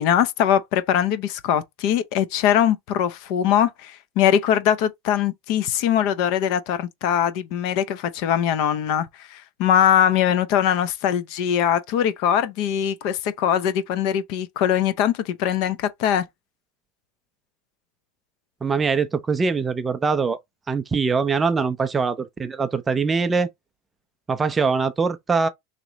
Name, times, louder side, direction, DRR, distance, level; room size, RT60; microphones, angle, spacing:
voice 1, 0.0-16.2, left 9 dB, 50° left, 0.5 m, -22 dB
voice 2, 18.6-20.4 20.7-23.5 24.3-25.5, right 5 dB, 15° right, 0.4 m, -22 dB
3.0 x 2.9 x 3.8 m
supercardioid pair, 150°, 0 cm